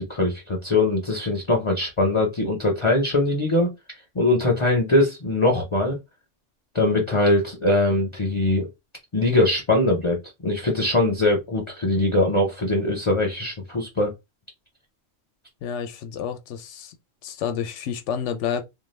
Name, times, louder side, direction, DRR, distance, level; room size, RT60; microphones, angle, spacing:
voice 1, 0.0-3.7 4.1-6.0 6.7-8.7 9.1-14.1, left 2 dB, 35° left, 0.5 m, -22 dB
voice 2, 15.6-16.9 17.2-18.6, left 8 dB, 90° left, 0.9 m, -29 dB
2.6 x 2.2 x 3.1 m
omnidirectional pair, 1.2 m